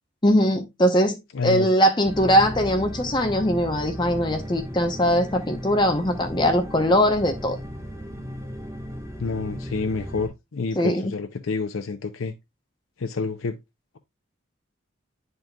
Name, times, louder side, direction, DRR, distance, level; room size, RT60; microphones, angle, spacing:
voice 1, 0.2-1.2 1.4-7.6 10.8-11.1, equal, 20° left, 0.7 m, -21 dB
voice 2, 1.3-1.7 9.2-12.3 13.0-13.6, left 4 dB, 80° left, 0.6 m, -28 dB
sound 1, 2.0-10.3, equal, 15° right, 1.2 m, -36 dB
10.5 x 4.0 x 2.2 m
head